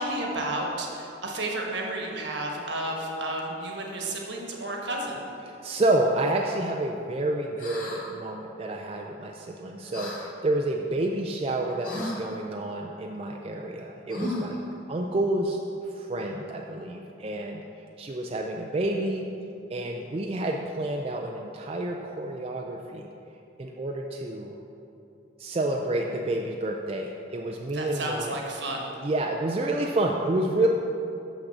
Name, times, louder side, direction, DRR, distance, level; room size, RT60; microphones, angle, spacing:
voice 1, 0.0-5.2 27.7-29.0, right 1 dB, 65° right, 0 dB, 1.3 m, -32 dB
voice 2, 5.5-14.6 14.9-15.6 15.9-17.6 18.0-19.3 19.7-23.1 23.6-24.5 25.4-28.4 29.0-30.7, right 1 dB, 30° right, 1 dB, 0.4 m, -29 dB
sound 1, 7.6-8.0 9.9-10.2 11.8-12.2 14.1-14.6, left 1 dB, 45° left, 1.6 m, -33 dB
6.4 x 6.0 x 6.6 m, 2.8 s
head